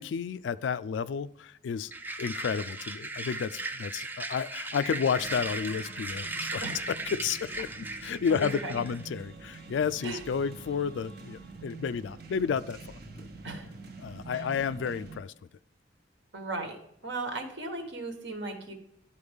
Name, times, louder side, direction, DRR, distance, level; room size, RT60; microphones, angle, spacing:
voice 1, 0.0-1.9 2.2-13.3 14.0-15.3, left 6 dB, 75° left, 0.3 m, -31 dB
sound 1, 1.9-9.0, right 2 dB, 10° right, 0.4 m, -37 dB
sound 2, 5.1-15.2, right 3 dB, 60° right, 0.9 m, -46 dB
voice 2, 8.3-8.7 10.0-10.2 13.4-13.7 14.3-14.5 16.3-18.7, right 2 dB, 75° right, 1.3 m, -36 dB
11.0 x 4.2 x 3.5 m
head